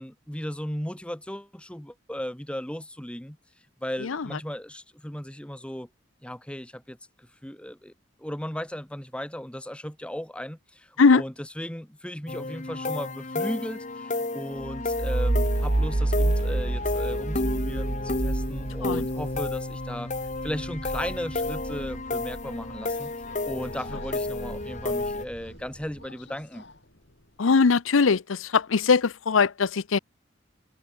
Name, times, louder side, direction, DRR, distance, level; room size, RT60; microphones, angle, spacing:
voice 1, 0.0-3.4 3.8-5.9 6.2-7.9 8.2-20.1 20.4-23.1 23.4-26.6, equal, 5° left, 1.3 m, -36 dB
sound 1, 12.3-25.2, left 2 dB, 40° left, 1.5 m, -32 dB
sound 2, 14.6-22.8 23.2-25.8, right 2 dB, 35° right, 0.7 m, -30 dB
Subway metro underground, 22.3-27.5, left 2 dB, 60° left, 6.5 m, -52 dB
voice 2, 27.4-30.0, left 4 dB, 90° left, 0.6 m, -21 dB
head